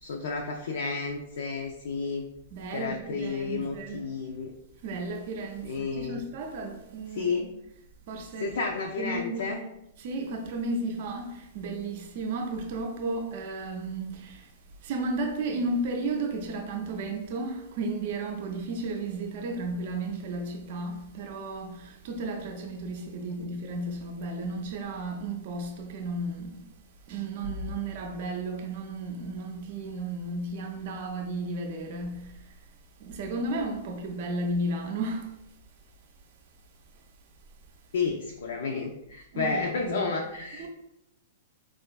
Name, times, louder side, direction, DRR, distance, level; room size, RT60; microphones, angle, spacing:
voice 1, 0.0-2.2 2.7-4.5 5.6-6.2 7.2-7.4 8.4-9.6 37.9-40.7, left 4 dB, 60° left, 0.3 m, -31 dB
voice 2, 2.5-4.0 4.8-7.5 8.1-8.6 9.0-9.6 10.0-14.5 14.8-26.7 27.1-32.5 33.0-35.3 39.3-40.1 40.6-40.7, right 2 dB, 50° right, 0.5 m, -33 dB
4.3 x 2.4 x 2.3 m
figure-of-eight pair, 105°, 0 cm